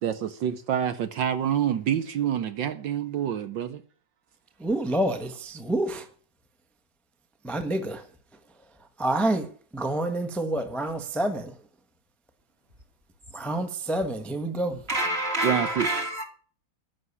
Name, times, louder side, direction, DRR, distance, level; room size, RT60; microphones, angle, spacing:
voice 1, 0.0-3.8 15.4-15.9, right 9 dB, 70° right, 1.5 m, -27 dB
voice 2, 4.6-6.1 7.4-8.1 8.8-11.6 13.3-14.8, right 1 dB, ahead, 1.0 m, -28 dB
voice 3, 14.9-16.2, right 1 dB, 30° right, 2.8 m, -27 dB
14.5 x 6.2 x 9.8 m
omnidirectional pair, 2.2 m